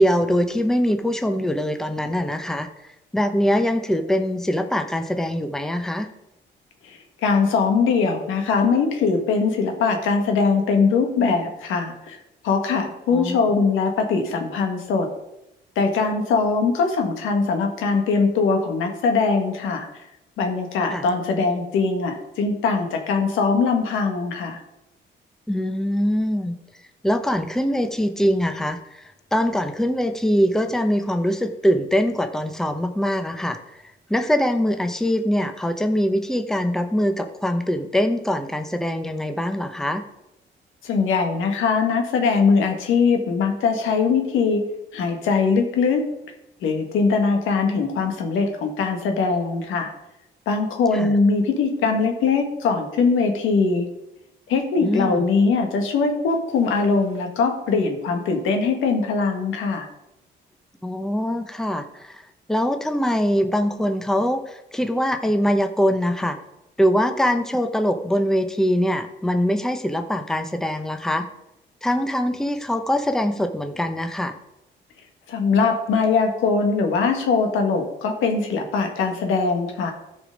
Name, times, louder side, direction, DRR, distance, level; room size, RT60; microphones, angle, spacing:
voice 1, 0.0-2.7 3.1-6.1 13.1-13.4 20.9-21.0 25.5-26.6 27.0-33.6 34.1-40.0 50.9-51.1 54.8-55.2 60.8-66.4 66.8-71.3 71.8-74.3, equal, ahead, 7 dB, 0.8 m, -23 dB
voice 2, 6.8-12.2 12.4-15.1 15.7-19.9 20.4-24.6 40.8-44.6 44.9-46.0 46.6-49.9 50.4-53.9 54.5-59.9 75.3-79.9, left 4 dB, 90° left, 4 dB, 1.6 m, -21 dB
13.5 x 5.2 x 5.2 m, 0.88 s
cardioid pair, 90°, 20 cm